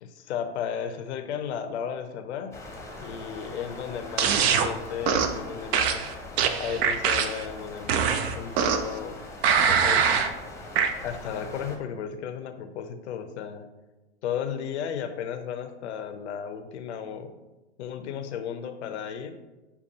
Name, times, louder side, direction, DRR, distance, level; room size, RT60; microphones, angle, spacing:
voice 1, 0.0-2.5 3.0-6.0 6.6-9.2 9.7-10.2 11.0-13.7 14.2-17.3 17.8-19.3, left 8 dB, 80° left, 8 dB, 0.6 m, -34 dB
sound 1, 2.5-11.8, left 2 dB, 10° left, 0.7 m, -42 dB
sound 2, 4.2-4.7 5.1-5.4 5.7-7.5 7.9-9.0 9.4-10.3 10.8-10.9, right 7 dB, 65° right, 0.5 m, -23 dB
6.5 x 2.3 x 2.7 m, 1.1 s
hypercardioid pair, 105°, 34 cm